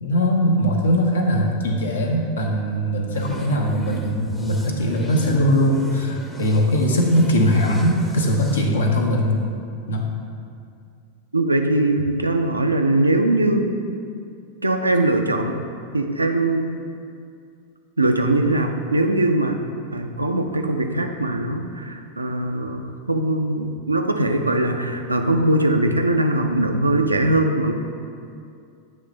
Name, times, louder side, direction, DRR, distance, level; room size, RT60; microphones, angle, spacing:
voice 1, 0.0-9.4 9.9-10.1, equal, 70° left, 1 dB, 0.9 m, -20 dB
sound 1, 3.1-8.6, right 1 dB, 5° left, 0.7 m, -34 dB
voice 2, 11.3-13.8 14.6-15.6 15.9-16.8 18.0-19.6 19.9-27.7, right 1 dB, 80° right, 5 dB, 0.4 m, -21 dB
8.1 x 3.2 x 5.1 m, 2.4 s
figure-of-eight pair, 90°, 0 cm